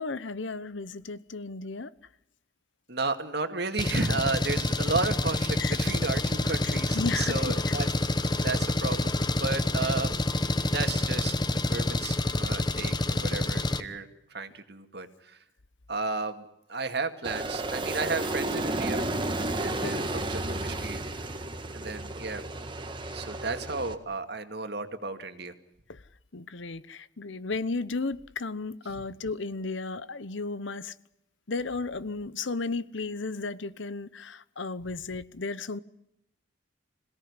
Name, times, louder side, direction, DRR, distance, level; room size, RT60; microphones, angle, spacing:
voice 1, 0.0-1.9 5.6-5.8 6.6-7.7 19.8-20.1 25.9-26.0 26.3-30.9 31.5-35.8, left 3 dB, 70° left, 1.0 m, -34 dB
voice 2, 2.9-7.9 8.4-10.1 10.4-15.4 15.9-19.0 19.6-21.0 21.7-22.4 23.1-25.5, right 3 dB, 55° right, 2.2 m, -33 dB
Engine, 3.8-13.8, left 2 dB, 20° left, 1.0 m, -27 dB
Aircraft, 17.2-23.9, right 2 dB, 25° right, 1.8 m, -32 dB
27.0 x 17.5 x 9.8 m
head